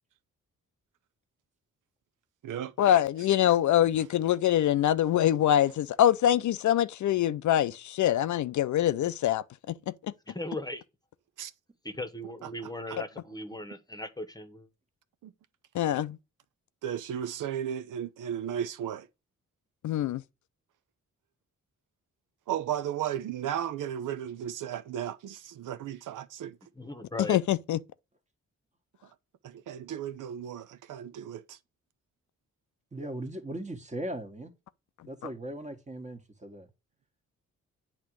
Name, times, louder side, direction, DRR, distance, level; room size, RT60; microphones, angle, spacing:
voice 1, 2.8-9.7 15.7-16.2 19.8-20.2 27.3-27.8, left 11 dB, 65° left, 0.5 m, -24 dB
voice 2, 10.3-10.8 11.8-14.7 26.7-27.4, left 1 dB, 10° left, 1.1 m, -38 dB
voice 3, 16.8-19.1 22.5-26.6 29.4-31.6, right 10 dB, 75° right, 0.6 m, -34 dB
voice 4, 32.9-34.5 35.0-36.7, right 1 dB, 25° right, 1.4 m, -38 dB
8.5 x 3.0 x 6.2 m
cardioid pair, 70°, 31 cm